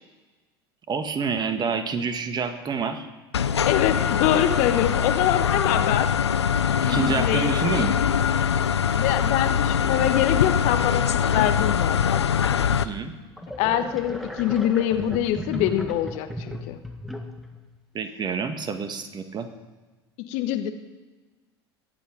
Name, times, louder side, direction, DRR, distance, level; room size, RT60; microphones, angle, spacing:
voice 1, 0.9-3.1 6.9-8.0 12.7-13.1 17.9-19.5, right 5 dB, 30° right, 8 dB, 1.6 m, -28 dB
sound 1, 3.3-12.8, left 8 dB, 85° left, 0.5 m, -23 dB
voice 2, 3.7-6.1 6.8-7.7 8.4-8.5 8.9-12.2 12.7-12.9 13.6-16.8 20.2-20.7, left 11 dB, 55° left, 8 dB, 1.3 m, -25 dB
sound 2, 13.4-17.6, equal, ahead, 1.5 m, -36 dB
22.0 x 8.4 x 5.2 m, 1.2 s
figure-of-eight pair, 75°, 14 cm